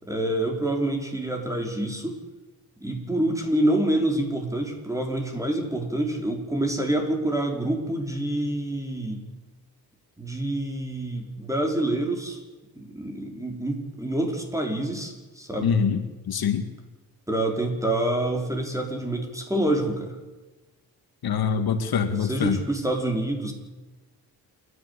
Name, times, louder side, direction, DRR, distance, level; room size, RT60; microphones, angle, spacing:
voice 1, 0.0-2.2 2.8-9.2 10.2-12.4 12.8-15.7 17.3-20.2 22.2-23.5, right 1 dB, 10° right, 2 dB, 5.3 m, -27 dB
voice 2, 15.6-16.6 21.2-22.6, left 6 dB, 70° left, 8 dB, 2.1 m, -24 dB
29.0 x 11.0 x 8.6 m, 1.2 s
cardioid pair, 90°, 38 cm